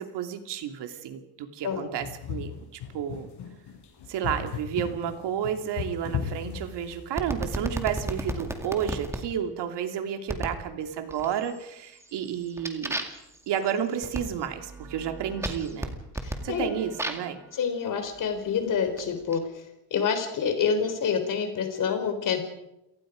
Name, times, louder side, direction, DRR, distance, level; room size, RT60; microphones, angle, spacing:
voice 1, 0.0-3.3 4.1-13.0 13.5-16.0 16.4-17.4, right 9 dB, 75° right, 6 dB, 2.8 m, -31 dB
sound 1, 2.0-7.3 8.3-8.6, left 8 dB, 70° left, 6.8 m, -36 dB
sound 2, 7.2-9.2 10.3-10.6 11.1-11.6 12.0-17.4 18.1-19.4, right 1 dB, 5° right, 2.2 m, -35 dB
voice 2, 16.2-16.7 17.5-19.6 19.9-22.4, left 6 dB, 50° left, 7 dB, 4.0 m, -27 dB
29.0 x 18.5 x 5.2 m, 0.89 s
cardioid pair, 155°, 42 cm